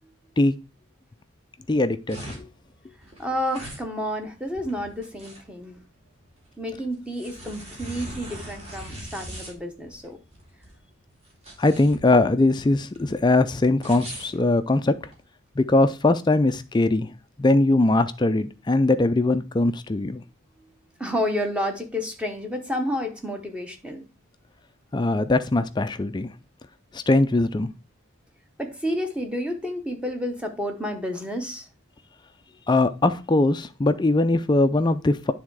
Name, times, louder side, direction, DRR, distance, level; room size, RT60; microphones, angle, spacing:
voice 1, 1.7-2.5 11.6-14.9 15.6-17.1 17.4-20.2 24.9-26.3 26.9-27.7 32.7-35.3, left 2 dB, 20° left, 0.3 m, -21 dB
sound 1, 1.7-15.2, right 1 dB, 30° right, 2.3 m, -42 dB
voice 2, 3.2-5.8 6.6-10.2 21.0-24.1 28.6-31.7, equal, 5° right, 0.9 m, -30 dB
9.7 x 3.6 x 4.6 m
head